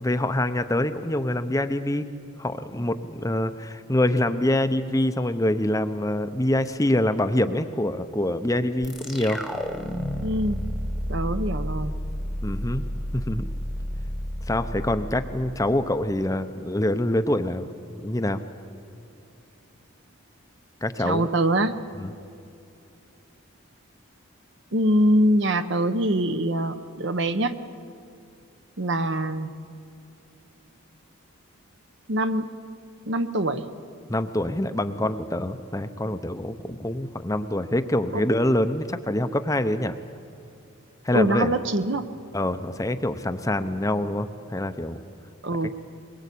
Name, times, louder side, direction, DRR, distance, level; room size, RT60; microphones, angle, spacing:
voice 1, 0.0-2.1 2.4-9.4 12.4-12.9 13.1-13.5 14.5-17.7 18.0-18.4 20.8-21.3 22.0-22.1 34.1-40.0 41.0-41.5 42.3-45.0 45.6-45.7, left 1 dB, 15° left, 9 dB, 0.7 m, -25 dB
sound 1, 8.8-16.1, equal, ahead, 1.2 m, -31 dB
voice 2, 10.2-10.6 11.1-11.9 21.0-21.7 24.7-27.6 28.8-29.5 32.1-32.5 33.1-33.6 38.1-38.3 41.1-42.0 45.4-45.7, right 1 dB, 55° right, 10 dB, 0.9 m, -23 dB
22.5 x 21.5 x 8.4 m, 2.6 s
head